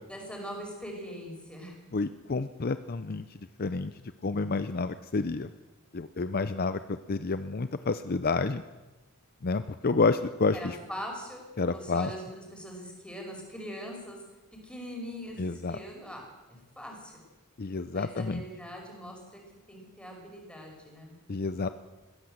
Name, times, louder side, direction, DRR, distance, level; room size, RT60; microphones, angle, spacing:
voice 1, 0.1-1.7 10.5-14.2 14.6-16.2 16.5-17.2 17.9-19.4 19.7-21.2, equal, 5° left, 0 dB, 5.7 m, -42 dB
voice 2, 1.9-3.9 4.2-5.5 5.9-8.6 9.4-10.8 11.6-12.1 15.4-15.8 17.6-18.4 21.3-21.7, left 3 dB, 45° left, 11 dB, 0.6 m, -29 dB
20.5 x 16.5 x 7.9 m, 1.1 s
head